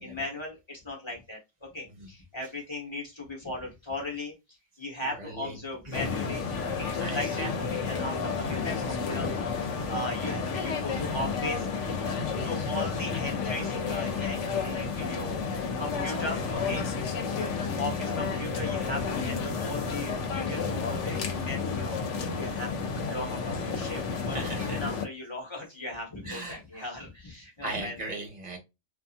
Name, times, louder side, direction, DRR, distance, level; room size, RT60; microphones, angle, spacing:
voice 1, 0.0-4.3 4.8-11.7 12.4-15.4 15.8-16.8 17.8-22.0 22.3-28.0, left 2 dB, 25° left, -1 dB, 1.0 m, -38 dB
voice 2, 5.0-5.6 5.8-6.0 7.0-7.5 17.3-17.6 18.3-18.5 24.3-24.8 26.2-26.8 27.6-28.6, right 2 dB, 40° right, 1 dB, 1.0 m, -38 dB
sound 1, 5.9-25.1, left 5 dB, 80° left, 1.0 m, -31 dB
2.7 x 2.4 x 2.4 m, 0.23 s
omnidirectional pair, 1.2 m